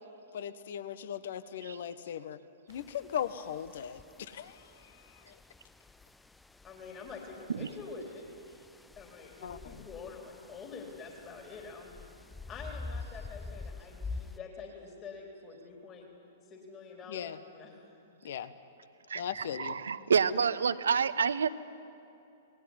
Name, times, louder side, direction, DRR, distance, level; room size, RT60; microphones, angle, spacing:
voice 1, 0.3-2.4 2.7-4.7 5.3-5.4 9.4-9.6 17.1-17.4 18.2-18.5 19.1-19.7, left 9 dB, 55° left, 14 dB, 1.2 m, -38 dB
sound 1, 2.7-14.4, left 3 dB, 5° left, 0.5 m, -47 dB
voice 2, 6.6-8.2 9.0-12.0 12.5-16.1 16.5-17.7, left 4 dB, 25° left, 1 dB, 3.9 m, -46 dB
voice 3, 19.1-21.5, right 6 dB, 70° right, 14 dB, 0.9 m, -28 dB
26.5 x 19.5 x 9.8 m, 2.7 s
figure-of-eight pair, 105°, 0 cm